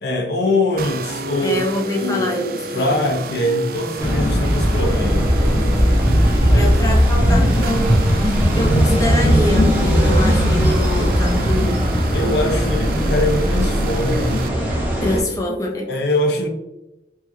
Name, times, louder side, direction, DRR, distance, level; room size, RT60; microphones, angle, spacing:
voice 1, 0.0-1.6 1.9-5.3 6.5-6.7 12.1-14.5 15.9-16.5, left 1 dB, 65° left, 3 dB, 0.7 m, -22 dB
sound 1, 0.8-14.5, right 4 dB, 55° right, 0.3 m, -32 dB
voice 2, 1.4-3.1 6.5-8.0 8.5-11.8 15.0-15.9, left 1 dB, 20° left, -1 dB, 0.5 m, -24 dB
sound 2, 4.0-15.2, equal, 10° right, 0.9 m, -18 dB
sound 3, 5.4-10.8, equal, 75° right, 0.8 m, -28 dB
4.6 x 2.8 x 2.9 m, 0.97 s
head